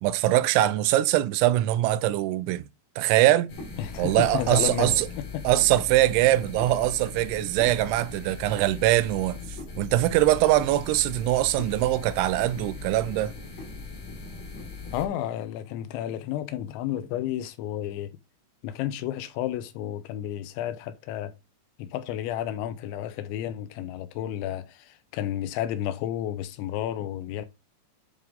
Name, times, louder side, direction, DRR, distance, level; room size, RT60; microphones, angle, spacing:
voice 1, 0.0-2.7 3.0-3.5 4.0-5.1 5.4-13.3, right 15 dB, 85° right, 2.8 m, -22 dB
sound 1, 3.5-15.1, left 4 dB, 60° left, 1.7 m, -39 dB
voice 2, 3.8-5.5 14.9-18.1 18.6-21.3 21.8-27.5, left 11 dB, 85° left, 2.9 m, -32 dB
10.5 x 3.6 x 3.7 m
omnidirectional pair, 5.5 m